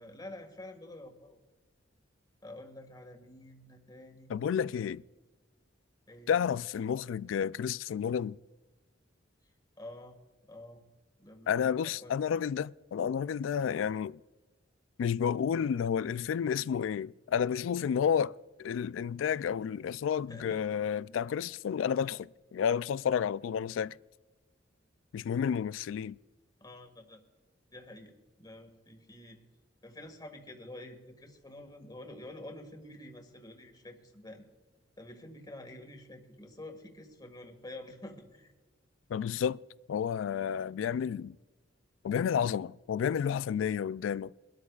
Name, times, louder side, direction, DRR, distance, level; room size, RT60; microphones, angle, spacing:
voice 1, 0.0-1.4 2.4-4.3 6.1-6.3 9.8-10.2 10.5-10.8 11.2-12.2 20.3-20.6 26.6-27.2 27.7-29.4 29.8-34.4 35.0-38.5, left 1 dB, 20° left, 1.8 m, -48 dB
voice 2, 4.3-5.0 6.3-8.4 11.5-14.2 15.0-24.0 25.1-26.2 39.1-39.6 39.9-41.4 42.0-44.3, left 7 dB, 80° left, 0.3 m, -31 dB
23.5 x 13.0 x 2.4 m
head